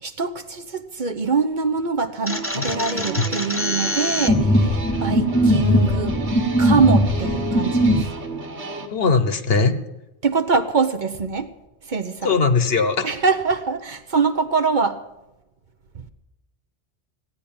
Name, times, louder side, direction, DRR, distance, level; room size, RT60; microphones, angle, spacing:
voice 1, 0.0-6.2 6.6-8.1 10.2-11.5 11.9-12.4 13.0-15.0 15.9-16.1, right 4 dB, 50° right, 9 dB, 0.9 m, -23 dB
sound 1, 2.3-8.0, equal, 15° left, 0.9 m, -20 dB
sound 2, 2.3-8.9, right 2 dB, 85° right, 1.8 m, -32 dB
voice 2, 8.9-9.7 12.2-13.1, left 4 dB, 65° left, 10 dB, 1.2 m, -19 dB
15.5 x 9.7 x 8.8 m, 0.97 s
omnidirectional pair, 1.1 m